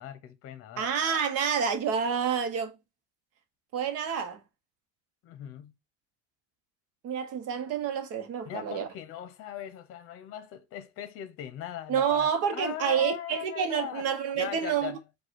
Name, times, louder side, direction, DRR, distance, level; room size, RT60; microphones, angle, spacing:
voice 1, 0.0-0.9 5.2-5.7 8.5-14.0 14.4-15.0, left 11 dB, 45° left, 0.8 m, -39 dB
voice 2, 0.8-2.7 3.7-4.4 7.0-8.9 11.9-14.9, right 7 dB, 50° right, 1.0 m, -28 dB
4.7 x 2.4 x 4.5 m
cardioid pair, 155°, 32 cm